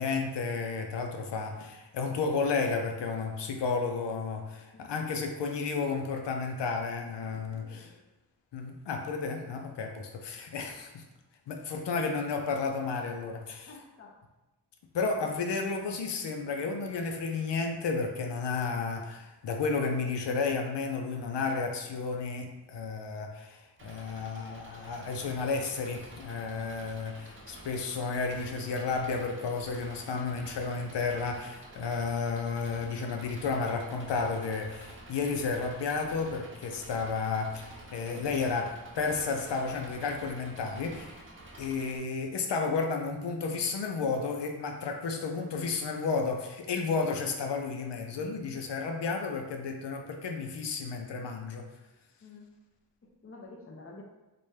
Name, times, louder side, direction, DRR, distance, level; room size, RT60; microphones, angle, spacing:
voice 1, 0.0-7.9 8.5-11.0 11.5-13.7 14.9-41.2 41.6-51.7, left 4 dB, 90° left, 3 dB, 0.5 m, -32 dB
voice 2, 7.6-8.0 13.7-14.2 52.2-52.5 53.0-54.0, left 3 dB, 35° left, 0 dB, 0.6 m, -50 dB
Engine, 23.8-42.0, right 1 dB, 30° right, 0.6 m, -49 dB
4.0 x 2.2 x 3.2 m, 1.0 s
wide cardioid pair, 95°, 41 cm